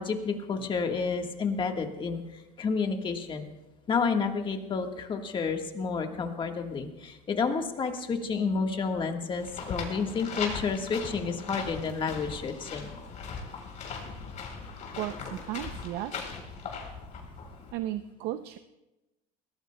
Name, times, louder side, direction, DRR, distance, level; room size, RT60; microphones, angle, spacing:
voice 1, 0.0-3.4 3.9-12.9, left 5 dB, 25° left, 4 dB, 1.5 m, -30 dB
sound 1, 9.4-17.7, left 5 dB, 45° left, 3.7 m, -39 dB
voice 2, 15.0-16.2 17.7-18.6, right 13 dB, 65° right, 10 dB, 0.6 m, -35 dB
22.0 x 18.0 x 2.2 m, 1.0 s
cardioid pair, 130°, 18 cm